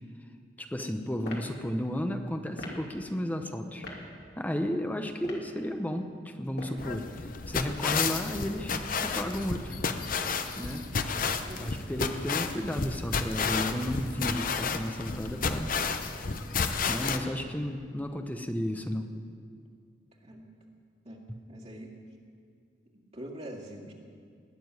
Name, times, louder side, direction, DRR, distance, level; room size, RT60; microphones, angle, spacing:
voice 1, 0.6-3.8 4.4-9.8 10.6-10.8 11.5-15.7 16.9-19.1, equal, 10° left, 6 dB, 0.8 m, -33 dB
sound 1, 1.2-1.5 2.5-2.8 3.8-4.0 5.1-5.5 6.4-6.8 7.9-8.2, left 1 dB, 70° left, 2.6 m, -40 dB
sound 2, 6.8-17.2, left 5 dB, 50° left, 0.8 m, -31 dB
voice 2, 11.4-11.8 20.2-20.5 21.0-21.2 21.5-21.9 22.9-23.9, right 1 dB, 40° right, -4 dB, 2.1 m, -44 dB
20.0 x 7.0 x 9.7 m, 2.2 s
head